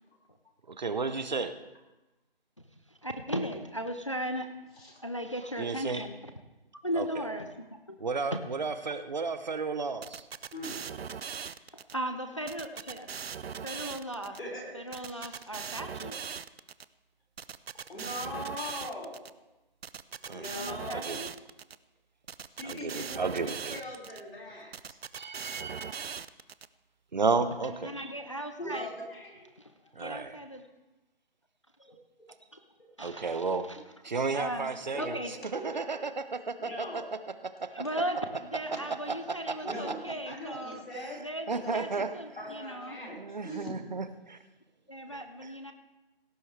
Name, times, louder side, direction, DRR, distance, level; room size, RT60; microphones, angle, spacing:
voice 1, 0.7-1.5 5.6-6.0 6.9-7.1 8.0-10.2 20.3-20.4 20.9-21.2 22.6-23.8 25.2-26.2 27.1-27.9 30.0-30.4 33.0-33.7 34.0-35.2 35.5-37.0 37.4-37.7 39.1-39.6 41.5-42.1 43.2-44.4 45.1-45.5, right 4 dB, 50° right, 11 dB, 0.8 m, -33 dB
voice 2, 2.9-4.5 5.0-6.3 6.8-7.5 7.9-8.0 8.3-8.4 8.9-9.0 11.9-13.2 13.6-14.4 14.7-16.2 20.6-21.3 27.6-28.9 29.6-29.7 30.0-30.6 31.8-32.0 32.5-32.6 33.0-33.8 34.3-35.3 37.7-38.2 38.5-40.8 41.2-43.0 44.9-45.7, equal, 30° left, 7 dB, 0.5 m, -37 dB
sound 1, 10.0-11.9 12.5-14.4 14.9-16.8 17.4-19.3 19.8-21.8 22.3-24.2 24.7-26.7, right 7 dB, 80° right, 0.6 m, -40 dB
voice 3, 14.4-15.5 16.0-16.1 17.9-19.2 20.3-21.2 22.5-25.0 28.6-29.6 31.9-32.3 32.8-32.9 34.9-36.0 36.6-37.0 37.8-37.9 38.7-38.8 39.6-41.2 41.6-42.1 42.4-43.7, left 1 dB, 75° left, -2 dB, 5.0 m, -41 dB
17.0 x 9.7 x 3.3 m, 1.0 s
figure-of-eight pair, 175°, 30 cm